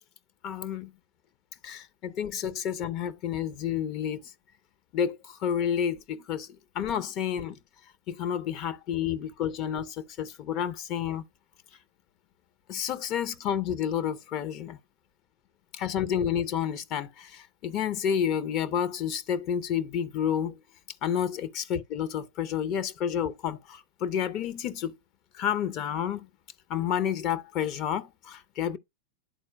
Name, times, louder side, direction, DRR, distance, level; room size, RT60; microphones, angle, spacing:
voice 1, 0.4-0.9 1.6-4.3 4.9-6.5 6.7-7.6 8.1-11.2 12.7-14.8 15.7-20.5 21.0-24.9 25.3-26.3 26.7-28.8, left 9 dB, 40° left, 0.5 m, -30 dB
11.0 x 4.3 x 2.2 m
figure-of-eight pair, 90°, 0 cm